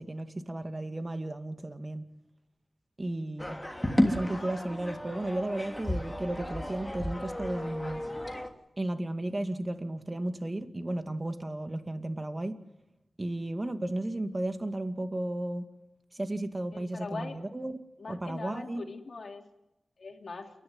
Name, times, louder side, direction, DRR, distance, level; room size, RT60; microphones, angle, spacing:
voice 1, 0.0-2.0 3.0-3.6 4.0-8.0 8.8-12.5 13.2-15.7 16.2-17.8 18.1-18.9, right 1 dB, 30° right, 8 dB, 2.2 m, -34 dB
sound 1, 3.4-8.5, left 1 dB, 15° left, 3.0 m, -32 dB
voice 2, 16.7-17.4 18.0-19.5 20.0-20.5, left 4 dB, 65° left, 3 dB, 3.1 m, -41 dB
29.5 x 11.5 x 9.5 m, 0.94 s
cardioid pair, 50°, 0 cm